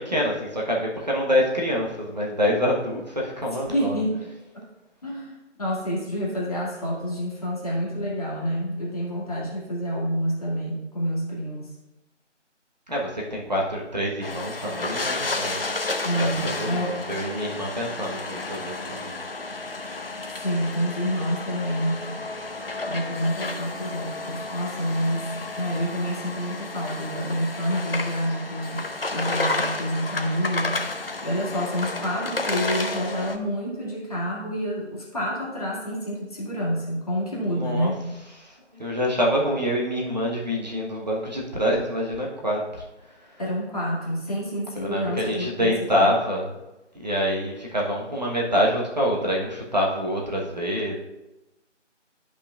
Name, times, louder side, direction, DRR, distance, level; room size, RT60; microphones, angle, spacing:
voice 1, 0.0-4.0 12.9-15.6 16.2-19.1 37.4-37.9 38.4-42.8 43.2-43.3 44.8-46.5 46.9-51.0, equal, 35° right, -2 dB, 1.1 m, -26 dB
voice 2, 3.7-4.3 5.0-11.7 16.0-17.0 20.4-22.1 22.9-25.3 25.6-30.8 31.2-38.0 43.4-46.1, equal, 30° left, -5 dB, 1.8 m, -28 dB
sound 1, 14.2-33.4, left 2 dB, 50° left, 0.8 m, -31 dB
11.5 x 5.6 x 2.4 m, 0.97 s
figure-of-eight pair, 165°, 37 cm